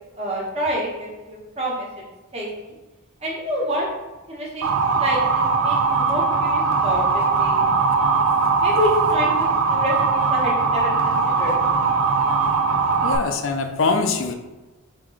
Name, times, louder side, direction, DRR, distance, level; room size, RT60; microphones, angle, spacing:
voice 1, 0.1-1.9 2.3-2.7 3.2-3.9 4.3-4.7 5.0-7.6 8.6-11.5, equal, 30° right, -4 dB, 1.2 m, -28 dB
Motor vehicle (road) / Siren, 4.6-13.2, right 4 dB, 85° right, 0.5 m, -20 dB
voice 2, 13.0-14.3, left 4 dB, 60° left, 6 dB, 0.5 m, -22 dB
3.7 x 3.0 x 4.7 m, 1.1 s
head